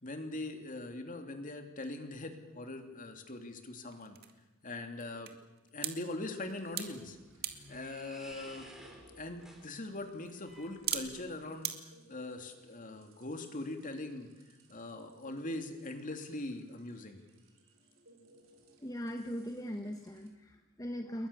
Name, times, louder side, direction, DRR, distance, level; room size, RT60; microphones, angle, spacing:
voice 1, 0.0-4.2 4.6-5.4 5.7-7.2 7.7-8.7 9.2-14.3 14.7-17.2, left 2 dB, 40° left, 6 dB, 2.9 m, -41 dB
sound 1, 2.4-11.8, right 10 dB, 50° right, 2.1 m, -45 dB
sound 2, 6.3-20.3, right 2 dB, 70° right, 5.1 m, -64 dB
sound 3, 6.5-11.4, equal, ahead, 4.7 m, -54 dB
voice 2, 18.8-21.3, equal, 15° left, 5 dB, 1.3 m, -40 dB
29.0 x 22.0 x 7.1 m, 1.1 s
head